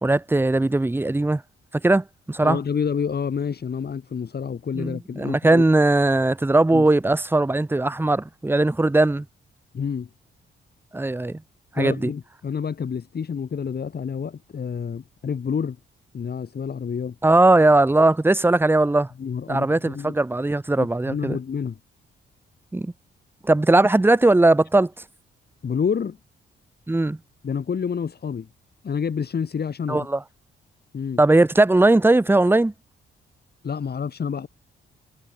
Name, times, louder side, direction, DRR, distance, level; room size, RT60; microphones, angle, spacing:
voice 1, 0.0-1.4 1.8-2.6 4.7-9.2 10.9-11.4 11.8-12.1 17.2-19.1 19.5-21.4 22.7-22.9 23.4-24.9 26.9-27.2 29.9-30.2 31.2-32.7, right 2 dB, 10° right, 0.9 m, -19 dB
voice 2, 2.4-5.6 6.7-6.9 9.7-10.1 11.7-15.8 16.1-17.2 19.2-20.1 20.8-21.8 25.6-26.2 27.4-28.5 28.8-30.1 30.9-31.2 33.6-34.5, left 6 dB, 50° left, 2.5 m, -28 dB
cardioid pair, 70°, 21 cm